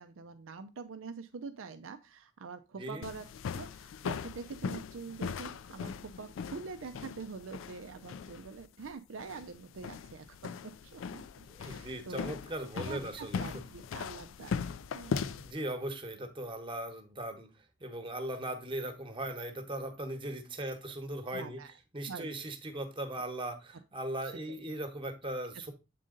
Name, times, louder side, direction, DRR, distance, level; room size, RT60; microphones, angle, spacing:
voice 1, 0.0-10.5 10.8-12.3 12.7-14.6 14.9-15.2 21.3-21.7 22.1-22.5 24.5-24.6, right 5 dB, 90° right, 8 dB, 0.5 m, -45 dB
voice 2, 2.7-3.0 11.5-13.4 15.4-17.5 17.8-21.6 21.9-25.7, right 1 dB, 25° right, 6 dB, 1.1 m, -38 dB
sound 1, 3.0-15.5, left 6 dB, 75° left, 0.3 m, -39 dB
7.4 x 3.9 x 3.8 m, 0.27 s
head